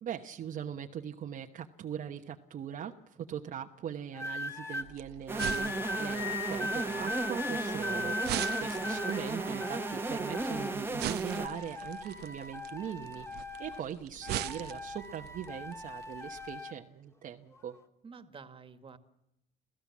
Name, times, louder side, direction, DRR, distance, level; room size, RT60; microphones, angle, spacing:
voice 1, 0.0-17.8, right 9 dB, 55° right, 2 dB, 1.1 m, -41 dB
sound 1, 4.1-4.9 5.4-10.9 11.3-13.9 14.2-16.7 17.5-17.8, left 2 dB, 15° left, 2.2 m, -39 dB
sound 2, 4.8-16.5, right 14 dB, 75° right, 0.8 m, -43 dB
sound 3, 5.3-11.5, right 3 dB, 15° right, 1.3 m, -35 dB
voice 2, 8.5-9.0 18.0-19.0, right 5 dB, 30° right, 9 dB, 1.9 m, -49 dB
27.5 x 16.0 x 7.3 m, 0.81 s
cardioid pair, 110°, 17 cm